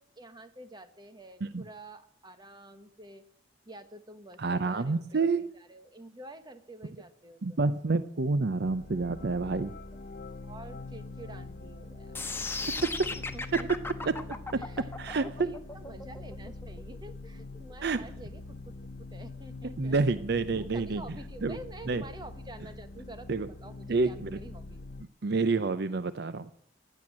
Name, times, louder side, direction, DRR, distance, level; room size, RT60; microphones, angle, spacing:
voice 1, 0.0-3.2 3.6-7.7 9.9-12.2 12.6-12.8 13.1-13.7 14.0-14.1 14.5-14.9 15.1-20.0 20.6-24.8, right 1 dB, 25° right, 9 dB, 1.5 m, -49 dB
voice 2, 4.4-5.5 7.4-9.7 12.8-13.1 13.5-13.7 14.1-14.2 15.0-15.5 17.8-18.0 19.6-21.0 21.4-21.6 21.9-22.0 23.3-23.5 23.9-24.4 25.2-26.5, right 3 dB, 60° right, 13 dB, 0.6 m, -28 dB
sound 1, 8.6-25.0, left 2 dB, 50° left, 0.7 m, -44 dB
sound 2, 12.1-18.2, left 3 dB, 15° left, 1.2 m, -37 dB
15.5 x 10.5 x 7.5 m, 0.71 s
head